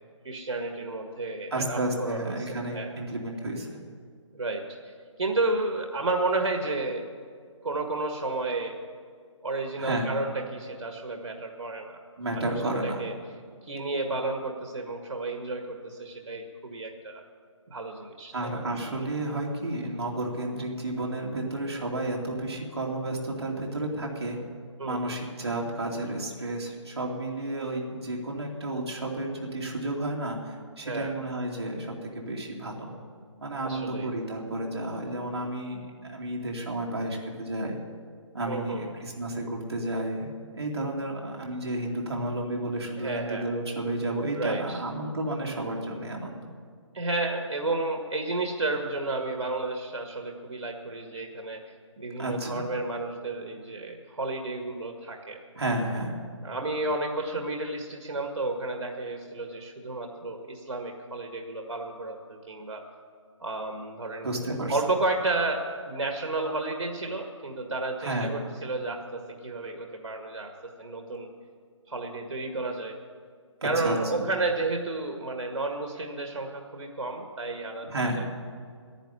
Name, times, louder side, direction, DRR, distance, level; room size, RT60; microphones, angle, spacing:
voice 1, 0.2-3.0 4.3-4.9 5.2-7.1 7.6-8.8 9.4-12.0 12.5-13.1 13.6-17.2 17.7-18.6 24.8-25.2 30.8-31.2 33.6-34.1 38.5-38.9 43.0-43.5 44.4-44.8 46.9-51.6 52.0-55.4 56.4-62.8 63.4-64.3 64.7-71.3 71.9-73.0 73.6-77.9 78.1-78.3, right 2 dB, 80° right, 3 dB, 1.7 m, -32 dB
voice 2, 1.5-3.8 9.8-10.1 12.2-13.0 18.3-24.4 24.8-32.9 33.4-37.8 38.3-46.4 52.2-52.6 55.5-56.1 64.2-64.8 68.0-68.4 73.6-74.2 77.8-78.2, right 1 dB, 55° right, -1 dB, 2.6 m, -32 dB
10.5 x 10.5 x 9.8 m, 2.1 s
hypercardioid pair, 175°, 16 cm